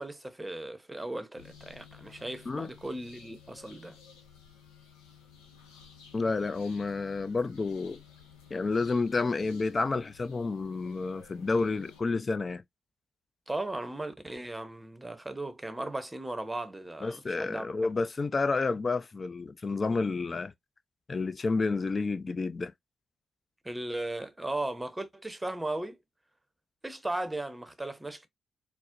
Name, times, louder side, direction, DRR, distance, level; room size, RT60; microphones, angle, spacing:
voice 1, 0.0-4.0 13.5-17.7 23.6-26.0 26.8-28.3, right 2 dB, 15° right, 0.8 m, -37 dB
sound 1, 1.4-12.0, left 7 dB, 85° left, 0.7 m, -54 dB
voice 2, 6.1-8.0 8.5-12.6 17.0-20.5 21.1-22.7, left 3 dB, 35° left, 0.5 m, -30 dB
4.2 x 2.0 x 2.5 m
hypercardioid pair, 40°, 0 cm